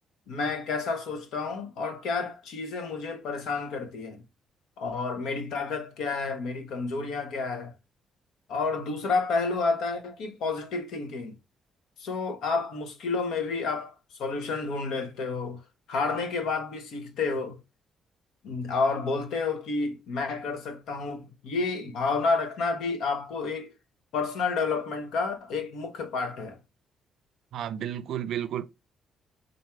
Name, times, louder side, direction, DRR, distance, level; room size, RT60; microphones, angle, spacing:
voice 1, 0.3-4.2 4.8-7.7 8.5-11.3 12.0-13.9 14.2-15.6 15.9-17.6 18.4-23.7 24.1-26.6, left 4 dB, 80° left, 1.0 m, -30 dB
voice 2, 27.5-28.7, right 10 dB, 75° right, 0.5 m, -32 dB
4.3 x 2.7 x 4.5 m
cardioid pair, 90°, 0 cm